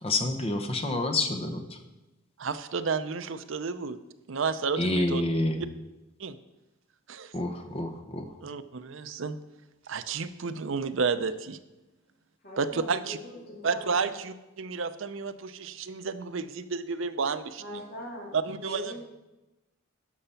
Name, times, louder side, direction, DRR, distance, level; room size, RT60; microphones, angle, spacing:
voice 1, 0.0-1.8 4.8-5.6 7.3-8.3, left 2 dB, 25° left, 6 dB, 0.9 m, -28 dB
voice 2, 2.4-4.0 4.3-5.2 6.2-6.4 7.1-7.3 8.4-9.4 9.9-11.6 12.6-13.2 13.6-17.8 18.3-18.9, right 5 dB, 65° right, 11 dB, 0.6 m, -31 dB
voice 3, 12.4-14.1 17.6-19.0, left 1 dB, 45° left, -2 dB, 2.3 m, -42 dB
12.0 x 5.7 x 5.7 m, 1.0 s
head